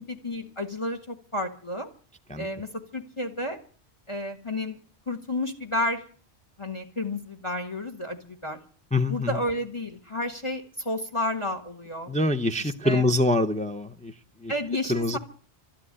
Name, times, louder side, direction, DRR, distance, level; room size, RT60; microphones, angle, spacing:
voice 1, 0.0-1.9 2.4-3.6 4.1-4.8 5.1-6.0 6.6-8.6 9.1-12.1 12.6-13.0 14.5-15.2, left 1 dB, 25° left, 6 dB, 1.6 m, -31 dB
voice 2, 8.9-9.4 12.1-14.1 14.4-14.5 14.9-15.2, left 2 dB, 10° left, 6 dB, 0.6 m, -25 dB
13.0 x 10.5 x 9.9 m, 0.43 s
omnidirectional pair, 1.2 m